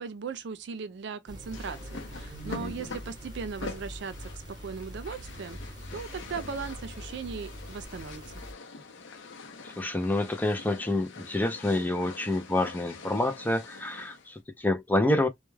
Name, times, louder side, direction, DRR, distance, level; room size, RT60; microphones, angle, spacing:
voice 1, 0.0-5.6 5.9-8.4, right 5 dB, 65° right, 0.4 m, -38 dB
sound 1, 1.3-8.5, equal, 25° right, 0.9 m, -43 dB
sound 2, 1.5-14.3, left 3 dB, 80° left, 0.6 m, -45 dB
voice 2, 9.6-15.3, left 1 dB, 10° left, 0.4 m, -28 dB
2.2 x 2.1 x 3.1 m
head